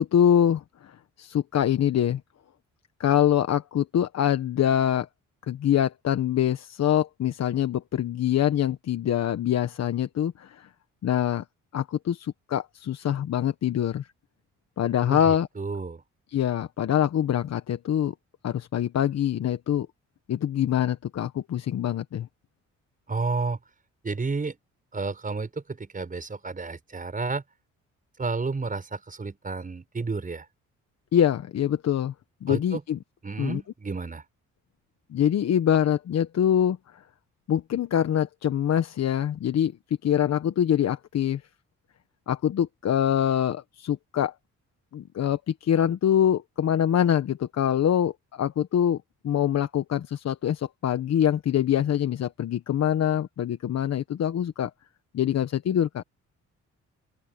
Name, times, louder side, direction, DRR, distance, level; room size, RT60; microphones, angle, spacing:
voice 1, 0.0-2.2 3.0-5.1 5.4-10.7 11.0-11.4 11.7-14.1 14.8-15.5 16.3-18.1 18.4-19.9 20.3-22.3 31.1-32.1 32.4-33.0 33.4-33.6 35.1-37.0 37.5-39.7 40.0-41.4 42.3-44.3 44.9-49.0 49.2-54.7 55.1-56.0, left 10 dB, 60° left, 1.3 m, -24 dB
voice 2, 15.1-16.0 23.1-23.6 24.0-24.6 24.9-27.4 28.2-30.5 32.5-32.8 33.2-34.2, right 4 dB, 25° right, 5.9 m, -31 dB
open air
cardioid pair, 90°, 30 cm